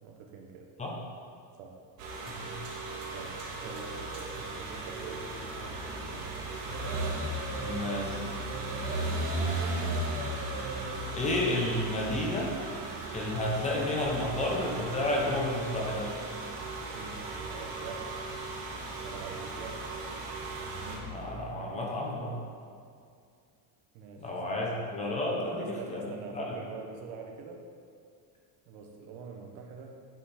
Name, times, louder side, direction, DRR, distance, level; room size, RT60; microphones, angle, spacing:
voice 1, 0.0-0.7 1.6-1.8 3.1-6.4 16.9-18.1 19.0-19.9 23.9-24.8 25.3-27.7 28.7-30.0, right 5 dB, 80° right, 2 dB, 1.3 m, -45 dB
sound 1, 2.0-21.0, right 2 dB, 55° right, 1.7 m, -36 dB
voice 2, 2.3-2.7 7.6-8.3 11.1-12.6 13.1-16.2 21.0-22.4 24.2-26.1 26.3-26.4, left 1 dB, 15° left, -2 dB, 0.9 m, -31 dB
sound 2, 3.1-20.7, right 1 dB, 15° right, 0.8 m, -54 dB
8.9 x 6.0 x 4.3 m, 2.3 s
cardioid pair, 180°, 40 cm